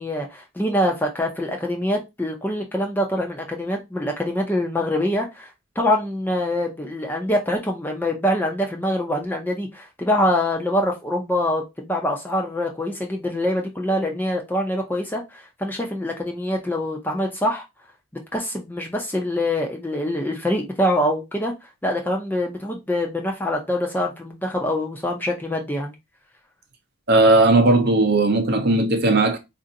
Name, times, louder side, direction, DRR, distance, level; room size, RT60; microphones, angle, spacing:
voice 1, 0.0-5.5 5.8-17.6 18.3-21.5 21.8-25.9, left 1 dB, 10° left, 0.5 m, -24 dB
voice 2, 27.1-29.4, right 2 dB, 45° right, 0.6 m, -17 dB
4.2 x 2.6 x 2.7 m
head